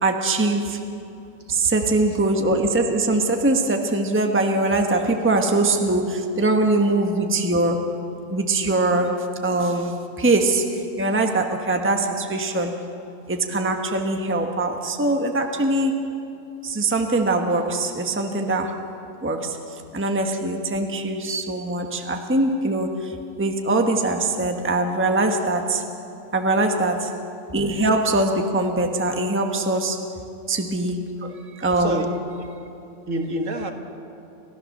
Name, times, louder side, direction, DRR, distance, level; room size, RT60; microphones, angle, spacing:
voice 1, 0.0-0.8 1.5-8.0 8.3-12.8 13.3-16.1 16.6-18.9 19.2-25.9 26.3-27.2 27.5-30.1 30.5-31.1 31.6-32.0, right 2 dB, 10° right, 4 dB, 1.1 m, -22 dB
voice 2, 31.8-32.1 33.1-33.7, right 1 dB, 60° right, 5 dB, 1.8 m, -28 dB
29.5 x 14.5 x 6.6 m, 2.7 s
omnidirectional pair, 1.6 m